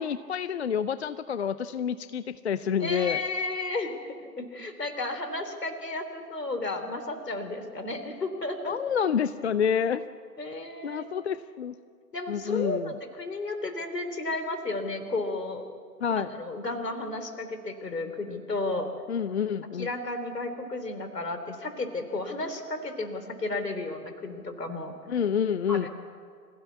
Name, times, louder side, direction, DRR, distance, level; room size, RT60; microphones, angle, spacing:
voice 1, 0.0-3.2 8.6-10.0 10.8-11.8 12.3-12.9 16.0-16.3 19.1-19.9 25.1-25.9, left 7 dB, 45° left, 14 dB, 0.6 m, -28 dB
voice 2, 2.8-9.0 10.4-11.1 12.1-15.7 16.2-18.9 19.8-24.9 25.7-25.9, left 2 dB, 75° left, 8 dB, 3.6 m, -33 dB
26.0 x 16.0 x 8.4 m, 2.1 s
figure-of-eight pair, 125°, 49 cm